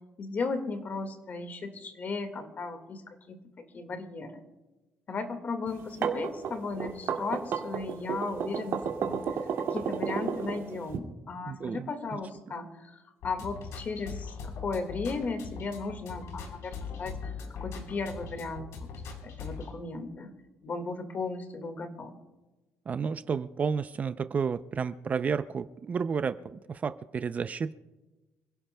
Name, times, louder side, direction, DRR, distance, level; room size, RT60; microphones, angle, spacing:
voice 1, 0.2-4.4 5.1-9.2 9.6-13.0 13.2-17.3 17.6-18.7 19.2-20.3 20.6-22.1, left 4 dB, 35° left, 7 dB, 1.8 m, -36 dB
sound 1, 5.7-11.0, right 7 dB, 65° right, 2.2 m, -31 dB
voice 2, 11.5-12.2 22.9-27.7, right 6 dB, 30° right, 12 dB, 0.4 m, -31 dB
sound 2, 13.2-19.7, left 5 dB, 75° left, 3.9 m, -41 dB
27.5 x 17.0 x 2.2 m, 1.1 s
cardioid pair, 150°, 5 cm